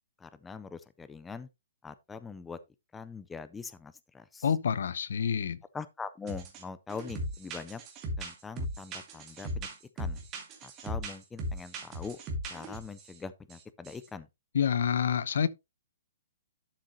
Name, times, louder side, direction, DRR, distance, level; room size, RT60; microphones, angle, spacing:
voice 1, 0.2-1.5 1.8-2.6 2.9-4.4 5.7-7.8 8.2-9.7 10.0-10.2 10.6-12.2 12.5-14.3, left 5 dB, 5° left, 0.4 m, -42 dB
voice 2, 4.4-5.6 14.5-15.5, left 7 dB, 65° left, 0.7 m, -27 dB
sound 1, 6.3-6.6 6.9-13.1 13.5-13.6 13.9-14.1, equal, 20° right, 2.2 m, -38 dB
11.5 x 6.5 x 2.9 m
hypercardioid pair, 170°, 0 cm